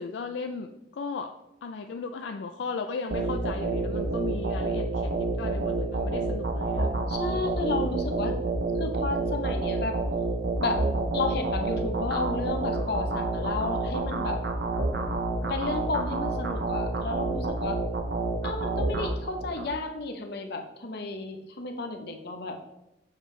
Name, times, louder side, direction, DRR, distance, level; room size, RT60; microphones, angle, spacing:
voice 1, 0.0-1.3 1.6-6.9, left 4 dB, 85° left, 6 dB, 0.4 m, -36 dB
sound 1, 3.1-19.7, right 3 dB, 65° right, 0.7 m, -29 dB
voice 2, 7.1-8.4 8.8-10.0 10.6-10.8 11.1-14.4 15.5-17.8 18.4-22.6, left 3 dB, 65° left, 5 dB, 0.8 m, -32 dB
7.2 x 4.9 x 3.2 m, 0.90 s
head